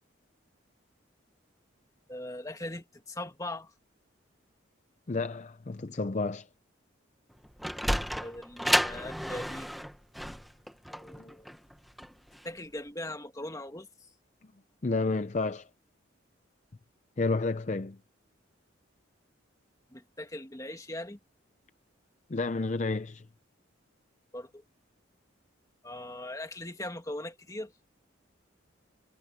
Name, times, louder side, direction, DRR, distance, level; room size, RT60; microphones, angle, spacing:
voice 1, 2.1-3.7 8.2-9.7 10.9-11.6 12.4-13.9 19.9-21.2 24.3-24.6 25.8-27.7, left 1 dB, 15° left, 1.9 m, -40 dB
voice 2, 5.1-6.5 11.2-11.3 14.8-15.7 17.2-18.0 22.3-23.3, left 3 dB, 35° left, 0.5 m, -30 dB
Sliding door, 7.3-12.5, equal, ahead, 0.9 m, -31 dB
head